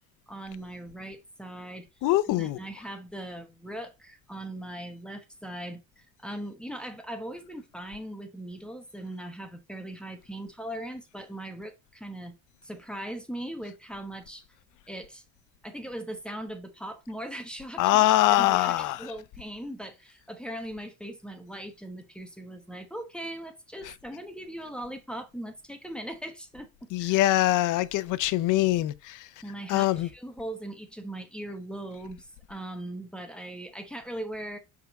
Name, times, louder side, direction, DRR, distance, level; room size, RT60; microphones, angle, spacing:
voice 1, 0.3-1.9 2.4-12.4 12.6-14.4 14.9-15.2 15.6-18.0 18.3-27.2 29.4-34.6, right 1 dB, 5° left, 1.0 m, -39 dB
voice 2, 2.0-2.6 17.8-19.1 26.9-29.3 29.7-30.1, left 16 dB, 60° left, 0.7 m, -23 dB
5.3 x 3.8 x 5.2 m
cardioid pair, 130°, 35 cm